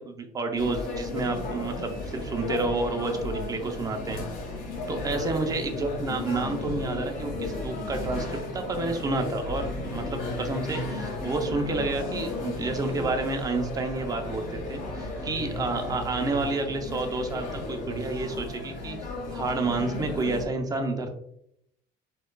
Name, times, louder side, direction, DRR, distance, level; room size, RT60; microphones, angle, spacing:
voice 1, 0.0-4.2 4.9-19.0 19.3-21.1, right 3 dB, 20° right, 5 dB, 0.4 m, -30 dB
sound 1, 0.6-20.4, left 2 dB, 50° left, 1.2 m, -34 dB
4.4 x 2.3 x 2.2 m, 0.74 s
cardioid pair, 155°, 18 cm